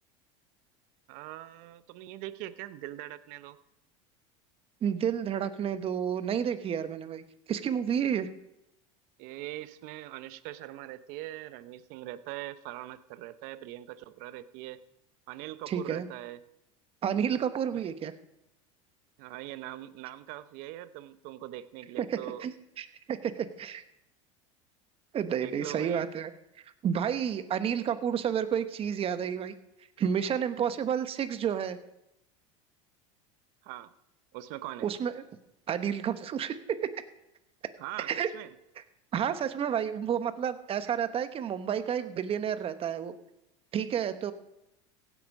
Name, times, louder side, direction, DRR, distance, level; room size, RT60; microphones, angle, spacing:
voice 1, 1.1-3.6 9.2-14.8 15.3-16.4 17.7-17.8 19.2-22.5 25.3-26.0 33.6-33.9 34.3-34.9 37.8-38.1 38.3-38.5, right 14 dB, 60° right, 14 dB, 0.8 m, -42 dB
voice 2, 4.8-8.3 15.7-16.1 17.0-18.1 22.0-23.8 25.1-26.3 26.8-29.5 30.0-31.8 34.8-35.2 35.7-36.9 38.0-38.3 39.1-43.1 43.7-44.3, right 8 dB, 35° right, 11 dB, 1.1 m, -30 dB
16.0 x 8.3 x 5.4 m, 0.86 s
hypercardioid pair, 100°, 16 cm